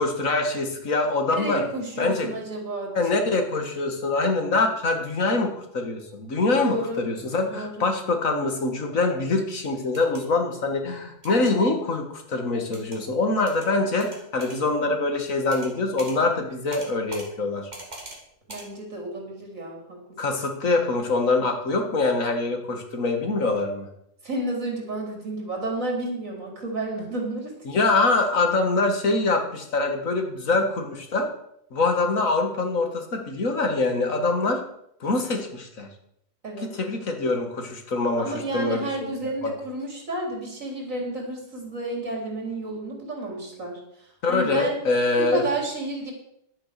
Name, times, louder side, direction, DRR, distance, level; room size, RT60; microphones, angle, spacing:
voice 1, 0.0-1.6 2.0-2.3 3.0-17.7 20.2-23.9 27.7-31.3 31.7-34.6 35.0-35.9 36.6-38.9 39.4-39.5 44.2-45.4, left 3 dB, 85° left, 5 dB, 2.2 m, -24 dB
voice 2, 1.3-3.0 6.5-7.0 7.5-7.9 18.5-20.0 24.2-27.5 36.4-36.7 38.2-43.8 44.3-44.8 45.2-46.1, right 2 dB, 80° right, 0 dB, 4.3 m, -31 dB
sound 1, 9.8-10.2 11.2-11.5 12.7-13.0 13.5-13.7 14.0-14.6 15.5-15.7 16.0-16.2 16.7-17.3 17.7-18.2 18.5-18.7, right 1 dB, 30° right, 3.4 m, -40 dB
11.5 x 8.8 x 6.8 m, 0.74 s
omnidirectional pair, 1.4 m